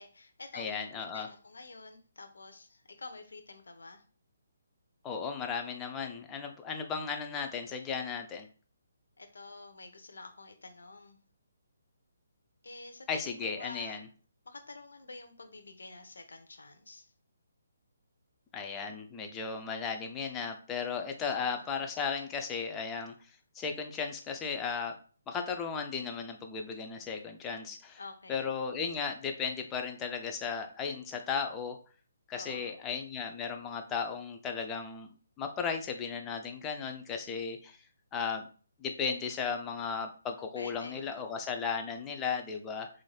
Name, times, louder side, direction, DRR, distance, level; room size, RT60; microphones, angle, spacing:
voice 1, 0.0-4.0 9.2-11.2 12.6-14.0 14.5-17.1 21.2-21.7 28.0-28.5 32.3-32.7 40.6-41.3, left 3 dB, 70° left, 6 dB, 0.6 m, -49 dB
voice 2, 0.5-1.3 5.0-8.5 13.1-14.1 18.5-23.1 23.5-25.0 25.3-28.0 28.3-31.8 32.3-35.1 35.4-37.8 38.1-38.5 38.8-42.9, left 5 dB, 15° left, 4 dB, 0.4 m, -35 dB
3.1 x 2.5 x 2.3 m, 0.40 s
figure-of-eight pair, 140°, 0 cm